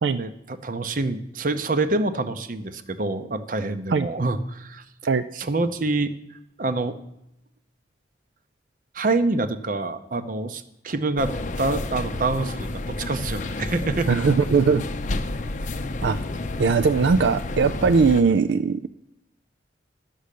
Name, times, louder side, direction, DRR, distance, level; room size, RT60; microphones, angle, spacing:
voice 1, 0.1-4.8 5.3-6.1 6.6-7.0 8.9-14.1, right 2 dB, 45° right, 11 dB, 0.7 m, -26 dB
sound 1, 11.2-18.2, left 2 dB, 40° left, 0.6 m, -30 dB
voice 2, 14.1-14.8 16.0-16.2 16.6-18.9, right 5 dB, 70° right, 10 dB, 0.4 m, -20 dB
11.5 x 6.3 x 8.3 m, 0.83 s
head